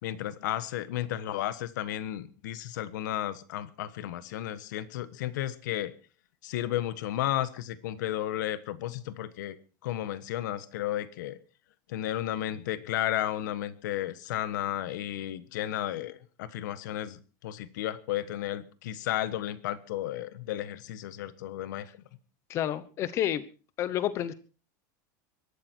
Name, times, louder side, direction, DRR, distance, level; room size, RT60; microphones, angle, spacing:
voice 1, 0.0-5.9 6.4-9.6 9.8-11.4 11.9-21.9, left 13 dB, 75° left, 15 dB, 1.4 m, -33 dB
voice 2, 22.5-23.4 23.8-24.3, left 11 dB, 30° left, 16 dB, 1.1 m, -29 dB
22.0 x 12.0 x 4.6 m, 0.36 s
supercardioid pair, 175°, 10 cm